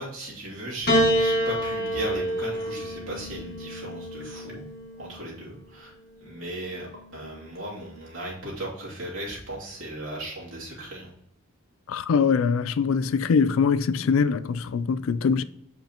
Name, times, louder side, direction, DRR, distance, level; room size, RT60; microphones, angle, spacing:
voice 1, 0.0-4.6 5.0-5.9 6.2-6.9 7.1-11.1, right 1 dB, 75° right, 2.7 m, -36 dB
Piano, 0.9-5.4 6.4-7.1, equal, 50° left, 1.6 m, -27 dB
voice 2, 11.9-15.4, left 5 dB, 80° left, 0.4 m, -23 dB
7.7 x 5.2 x 2.9 m
head